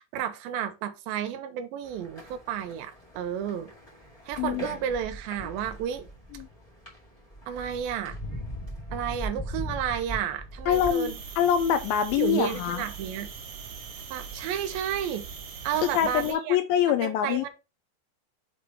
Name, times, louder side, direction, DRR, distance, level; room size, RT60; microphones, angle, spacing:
voice 1, 0.0-3.7 4.3-6.1 7.5-8.2 8.9-11.2 12.2-13.3 14.1-15.3 15.6-16.6 17.0-17.5, right 9 dB, 80° right, 2.3 m, -32 dB
Paseo por la calle, 1.8-10.9, equal, 20° left, 1.0 m, -40 dB
voice 2, 10.7-12.8 15.8-17.5, left 9 dB, 85° left, 2.1 m, -25 dB
sound 1, 10.7-16.3, right 6 dB, 60° right, 2.4 m, -41 dB
7.1 x 3.2 x 4.4 m
omnidirectional pair, 4.7 m